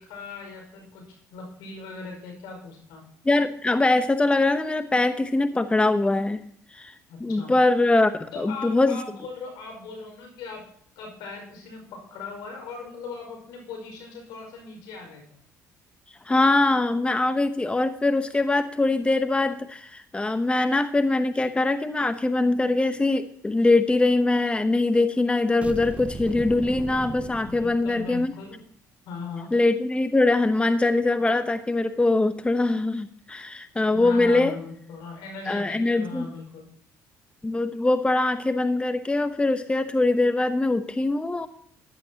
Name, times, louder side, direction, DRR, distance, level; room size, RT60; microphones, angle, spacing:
voice 1, 0.0-3.0 7.1-7.5 8.3-10.6 11.0-15.4 27.4-28.6 29.1-29.5 33.9-36.7, left 4 dB, 80° left, 2 dB, 5.2 m, -39 dB
voice 2, 3.2-6.4 6.7-9.0 16.3-28.3 29.5-34.5 35.5-36.3 37.4-41.5, left 2 dB, 15° left, 9 dB, 0.9 m, -22 dB
sound 1, 25.6-28.4, right 3 dB, 20° right, 0.9 m, -37 dB
14.0 x 11.5 x 2.9 m, 0.66 s
supercardioid pair, 70°, 7 cm